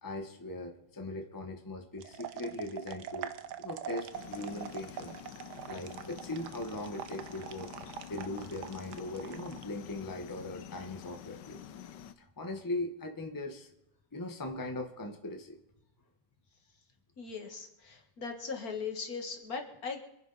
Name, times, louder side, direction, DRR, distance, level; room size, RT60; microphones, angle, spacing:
voice 1, 0.0-3.3 3.6-5.2 5.7-7.7 8.1-11.6 12.2-13.7 14.1-15.6, left 2 dB, 15° left, 4 dB, 1.2 m, -39 dB
sound 1, 2.0-9.6, right 9 dB, 75° right, 1.4 m, -43 dB
sound 2, 4.1-12.1, left 9 dB, 90° left, 1.4 m, -48 dB
voice 2, 17.2-20.0, left 5 dB, 55° left, 4 dB, 2.1 m, -39 dB
25.5 x 10.0 x 4.1 m, 0.86 s
omnidirectional pair, 1.9 m